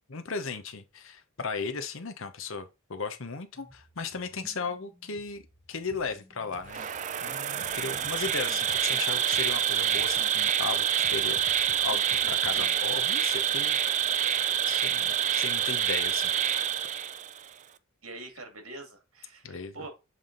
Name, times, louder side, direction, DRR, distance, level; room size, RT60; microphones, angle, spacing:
voice 1, 0.1-5.4 5.7-6.8 7.2-13.8 14.7-16.3 19.4-19.8, left 5 dB, 65° left, 0.9 m, -36 dB
sound 1, 3.5-8.5, equal, 5° left, 1.2 m, -58 dB
sound 2, 5.9-6.2 6.5-6.9 7.2-9.7 10.0-10.3 10.6-12.7, left 2 dB, 40° left, 0.9 m, -51 dB
Insect, 6.7-17.5, right 9 dB, 35° right, 0.4 m, -27 dB
voice 2, 18.0-19.9, right 2 dB, 70° right, 2.2 m, -44 dB
7.4 x 3.5 x 3.9 m
head